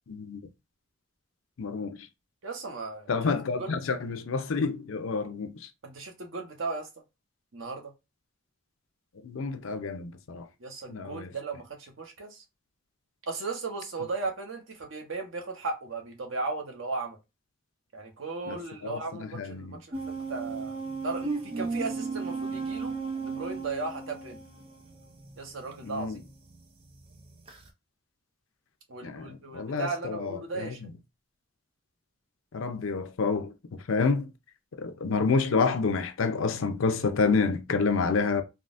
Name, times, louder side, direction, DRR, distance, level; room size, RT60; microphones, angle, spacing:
voice 1, 0.1-0.4 1.6-2.1 3.1-5.7 9.2-10.5 10.9-11.3 18.5-19.8 25.8-26.2 29.0-30.7 32.5-34.3 34.8-38.4, left 4 dB, 85° left, 0.5 m, -29 dB
voice 2, 2.4-3.1 3.6-3.7 5.8-6.9 7.5-7.9 10.6-12.4 13.3-17.2 17.9-22.9 23.2-24.4 25.4-26.2 28.9-30.8, right 3 dB, 85° right, 0.8 m, -36 dB
sound 1, 19.9-25.4 26.0-26.3 27.5-27.6, right 4 dB, 30° right, 0.5 m, -34 dB
3.6 x 2.0 x 2.5 m
head